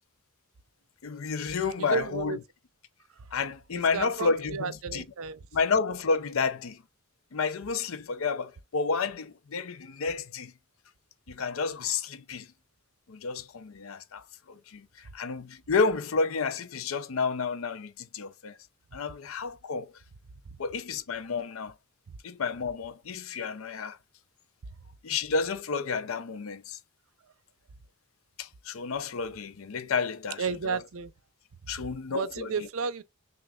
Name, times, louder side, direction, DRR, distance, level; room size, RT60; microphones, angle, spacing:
voice 1, 1.0-2.4 3.3-5.0 5.5-6.8 7.3-10.5 11.3-12.5 13.1-18.6 18.9-19.9 20.6-21.7 22.2-24.0 25.0-26.8 28.4-30.8 31.7-32.7, left 4 dB, 75° left, 0.6 m, -31 dB
voice 2, 1.8-2.4 3.2-3.3 3.7-5.4 22.1-22.2 30.4-31.1 32.1-33.0, right 5 dB, 75° right, 0.5 m, -33 dB
6.2 x 2.5 x 2.4 m
head